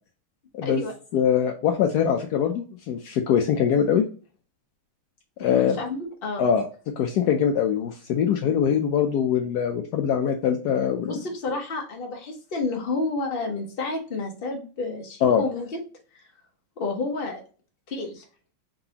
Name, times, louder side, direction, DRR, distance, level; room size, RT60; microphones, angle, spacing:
voice 1, 0.6-0.9 5.4-6.5 11.0-15.8 16.1-16.2 16.8-17.4 17.9-18.2, left 3 dB, 35° left, 2 dB, 0.9 m, -30 dB
voice 2, 1.1-4.0 5.4-5.8 6.4-6.7 7.0-11.2 15.2-15.4, left 8 dB, 80° left, 4 dB, 0.8 m, -23 dB
4.6 x 3.9 x 2.8 m, 0.38 s
omnidirectional pair, 2.3 m